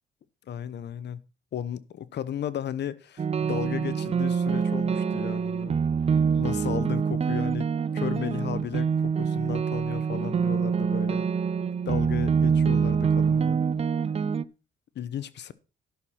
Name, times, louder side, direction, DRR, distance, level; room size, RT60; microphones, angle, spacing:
voice 1, 0.5-1.2 1.5-5.8 6.4-11.2 11.8-13.6 14.9-15.5, left 9 dB, 60° left, 0.9 m, -34 dB
sound 1, 3.2-14.4, right 6 dB, 30° right, 0.5 m, -25 dB
12.0 x 6.4 x 5.8 m
cardioid pair, 90°, 20 cm